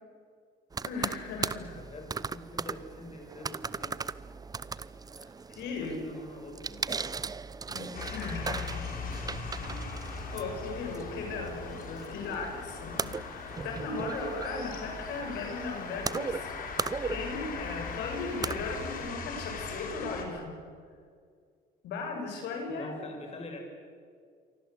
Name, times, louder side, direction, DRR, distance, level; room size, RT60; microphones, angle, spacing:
sound 1, 0.7-19.1, right 5 dB, 20° right, 0.8 m, -38 dB
voice 1, 0.8-1.8 5.5-6.0 7.7-9.0 9.6-9.9 10.3-13.1 13.6-16.4 17.0-20.5 21.8-23.0, left 3 dB, 80° left, 2 dB, 7.0 m, -37 dB
voice 2, 1.7-4.0 5.8-7.3 22.7-23.6, left 2 dB, 40° left, 3 dB, 6.4 m, -45 dB
sound 2, 7.9-20.3, left 5 dB, 55° left, 4.7 m, -40 dB
28.0 x 24.5 x 8.4 m, 2.1 s
cardioid pair, 110°, 17 cm